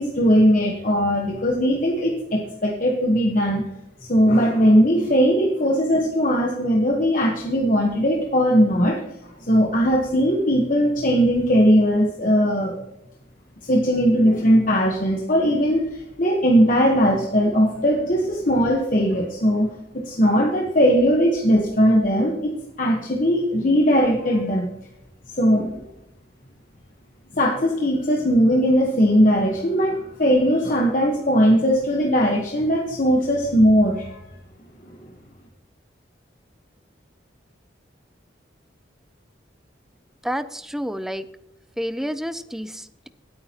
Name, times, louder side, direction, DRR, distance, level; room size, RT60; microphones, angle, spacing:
voice 1, 0.0-3.6 4.1-9.0 9.4-12.7 13.6-19.7 20.1-24.7 25.4-25.8 27.3-34.2, equal, 45° left, 0 dB, 1.1 m, -19 dB
voice 2, 40.2-41.3 41.8-43.1, equal, ahead, 12 dB, 0.4 m, -29 dB
17.5 x 8.8 x 2.9 m, 0.90 s
head